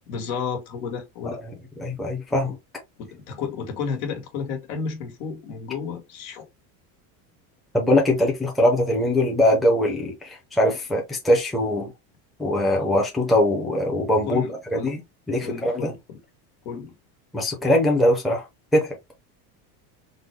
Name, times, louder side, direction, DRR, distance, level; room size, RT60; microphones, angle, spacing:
voice 1, 0.1-1.4 3.0-6.5 14.2-15.0 15.4-16.2 16.6-16.9, left 6 dB, 75° left, 1.5 m, -32 dB
voice 2, 1.8-2.6 7.7-11.9 12.4-14.4 14.7-15.0 15.3-15.9 17.3-18.4 18.7-18.9, left 1 dB, ahead, 0.6 m, -21 dB
3.8 x 2.2 x 3.2 m
cardioid pair, 155°, 44 cm